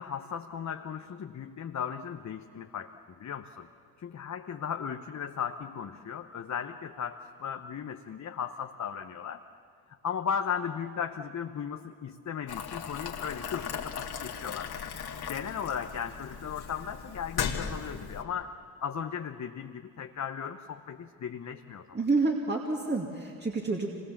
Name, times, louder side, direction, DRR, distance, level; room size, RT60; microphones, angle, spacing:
voice 1, 0.0-2.9 3.2-3.7 4.0-9.4 10.0-14.7 15.3-18.5 18.8-22.0, left 7 dB, 40° left, 6 dB, 0.9 m, -36 dB
Boiling, 12.5-18.2, left 7 dB, 65° left, 2.1 m, -37 dB
voice 2, 21.9-23.9, right 3 dB, 25° right, 0 dB, 2.3 m, -28 dB
25.0 x 21.0 x 7.3 m, 2.3 s
supercardioid pair, 65°, 42 cm